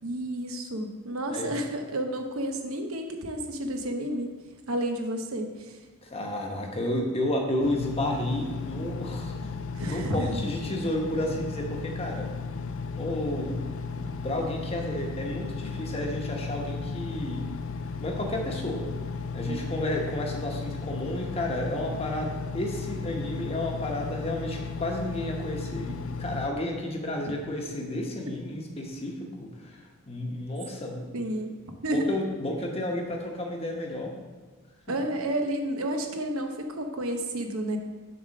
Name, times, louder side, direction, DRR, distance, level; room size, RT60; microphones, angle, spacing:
voice 1, 0.0-4.3 4.7-5.8 9.7-10.4 19.5-19.7 31.1-31.5 31.8-32.1 34.9-37.8, right 1 dB, 85° right, 4 dB, 0.9 m, -31 dB
voice 2, 6.0-9.5 9.8-12.3 13.0-13.6 14.0-17.5 18.0-18.8 19.3-31.1 31.9-34.1, left 1 dB, 30° left, 1 dB, 1.0 m, -31 dB
Engine, 7.6-26.5, left 4 dB, 70° left, 0.4 m, -35 dB
6.8 x 4.0 x 6.5 m, 1.4 s
head